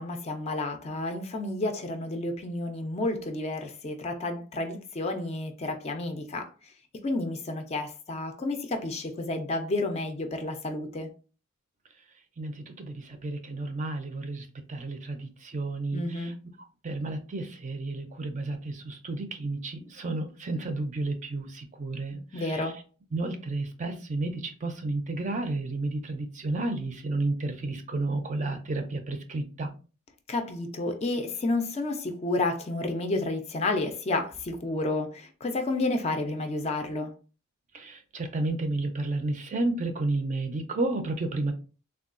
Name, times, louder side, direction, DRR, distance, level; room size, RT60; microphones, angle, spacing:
voice 1, 0.0-6.5 7.0-11.1 15.9-16.3 22.3-22.8 30.3-37.1, left 2 dB, 30° left, 0.4 m, -30 dB
voice 2, 12.4-16.3 16.8-22.7 23.1-29.7 37.7-41.5, right 2 dB, 35° right, 0.4 m, -32 dB
3.5 x 2.3 x 2.4 m
head